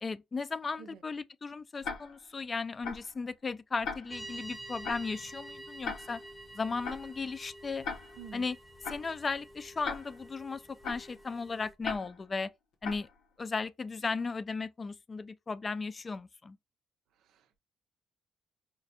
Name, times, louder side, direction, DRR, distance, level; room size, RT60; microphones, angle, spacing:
voice 1, 0.0-6.2 6.5-7.8 8.3-8.6 8.9-12.5 12.8-13.1 13.4-16.6, left 4 dB, 35° left, 0.4 m, -36 dB
Tick-tock, 1.8-2.3 2.8-3.2 3.8-4.3 4.8-5.2 5.8-6.3 6.8-7.2 7.8-8.3 8.8-9.2 9.8-10.3 10.8-11.2 11.8-12.3 12.8-13.2, left 5 dB, 85° left, 0.9 m, -40 dB
sound 1, 4.1-11.7, right 1 dB, 5° left, 0.7 m, -48 dB
voice 2, 17.2-17.6, right 7 dB, 80° right, 0.6 m, -49 dB
4.9 x 2.2 x 2.8 m
cardioid pair, 90°, 0 cm